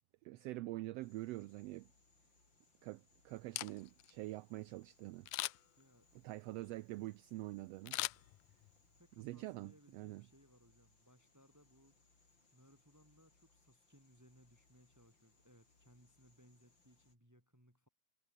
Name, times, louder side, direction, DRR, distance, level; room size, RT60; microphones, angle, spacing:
voice 1, 0.2-1.9 2.8-5.3 6.2-8.0 9.2-10.3, right 18 dB, 90° right, 1.4 m, -45 dB
sound 1, 1.0-17.2, left 3 dB, 35° left, 6.0 m, -73 dB
Camera, 3.4-4.1 5.3-5.8 7.9-8.8 9.2-9.3, left 19 dB, 85° left, 2.1 m, -41 dB
voice 2, 5.8-6.1 9.0-17.9, equal, 5° right, 5.8 m, -67 dB
omnidirectional pair, 3.4 m